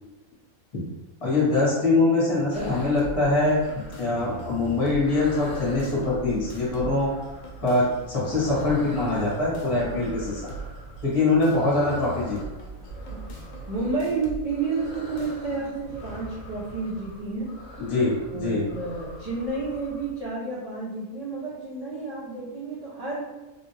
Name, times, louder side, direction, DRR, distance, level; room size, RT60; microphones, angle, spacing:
voice 1, 1.2-3.6 4.0-7.1 7.6-10.5 11.0-12.4 17.8-18.7, left 2 dB, 25° left, -6 dB, 1.1 m, -23 dB
sound 1, 2.5-16.5, right 2 dB, 80° left, 0.4 m, -42 dB
sound 2, 2.5-20.2, equal, 60° left, 1.0 m, -43 dB
voice 2, 13.1-17.6 18.3-23.3, right 3 dB, 40° right, -8 dB, 0.5 m, -31 dB
3.2 x 2.5 x 2.8 m, 1.1 s
omnidirectional pair, 1.4 m